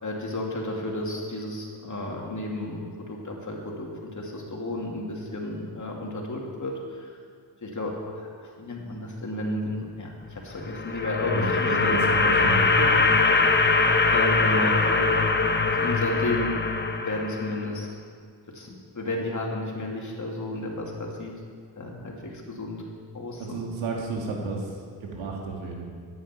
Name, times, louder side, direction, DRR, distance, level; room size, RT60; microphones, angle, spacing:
voice 1, 0.0-7.1 7.6-12.0 13.2-13.4 13.7-16.6 16.9-17.9 18.5-21.3 21.8-22.8 23.1-23.6, left 1 dB, 40° left, -1 dB, 2.8 m, -32 dB
sound 1, 10.5-17.7, left 3 dB, 25° left, 0.9 m, -22 dB
voice 2, 11.3-12.9 23.4-25.9, right 4 dB, 80° right, 0 dB, 2.1 m, -32 dB
14.0 x 9.5 x 4.6 m, 2.1 s
supercardioid pair, 55°, 46 cm